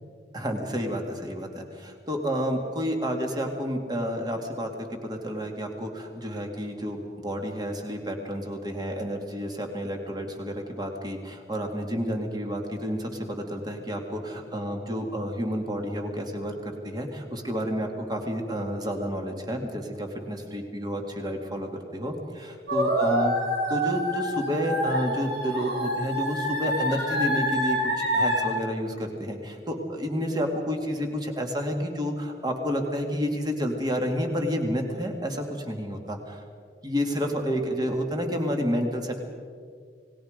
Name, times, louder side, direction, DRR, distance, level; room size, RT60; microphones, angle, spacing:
voice 1, 0.3-23.3 23.7-36.4 36.8-39.2, equal, 25° right, 3 dB, 2.5 m, -30 dB
sound 1, 22.7-28.4, equal, 75° right, 5.6 m, -27 dB
29.5 x 19.5 x 5.2 m, 2.1 s
head